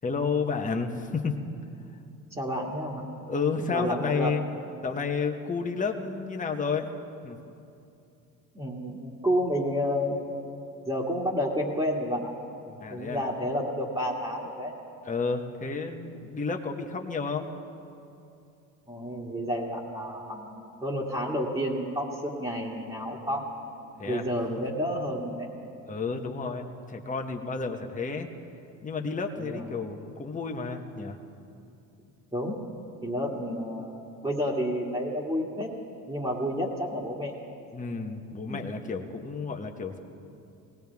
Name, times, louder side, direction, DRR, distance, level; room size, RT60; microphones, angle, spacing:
voice 1, 0.0-1.4 3.3-4.4 4.8-6.9 7.2-7.4 12.8-13.2 15.0-17.5 24.0-24.2 25.9-28.3 28.8-31.2 37.7-40.0, left 4 dB, 20° left, 2 dB, 1.3 m, -31 dB
voice 2, 2.3-3.0 3.7-4.4 8.5-10.2 10.9-12.3 12.7-14.7 18.9-23.5 24.0-25.6 29.4-29.7 32.3-32.6 33.0-35.7 36.1-37.4 38.5-38.7, equal, 15° right, -5 dB, 2.4 m, -30 dB
19.5 x 17.5 x 3.6 m, 2.6 s
hypercardioid pair, 70°, 42 cm